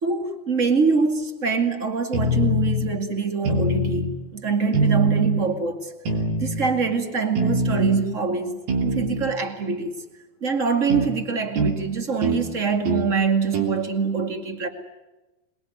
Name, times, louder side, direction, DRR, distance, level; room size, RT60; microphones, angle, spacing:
voice 1, 0.0-5.9 6.4-9.9 10.4-14.7, right 5 dB, 25° right, 6 dB, 1.9 m, -24 dB
sound 1, 2.1-2.8 3.4-4.2 4.7-5.4 6.1-6.7 7.4-8.0 8.7-9.4 10.9-11.1 11.6-11.8 12.2-12.4 12.8-13.1 13.5-13.8, right 1 dB, 70° right, 4.7 m, -23 dB
27.0 x 21.5 x 9.6 m, 1.1 s
omnidirectional pair, 4.4 m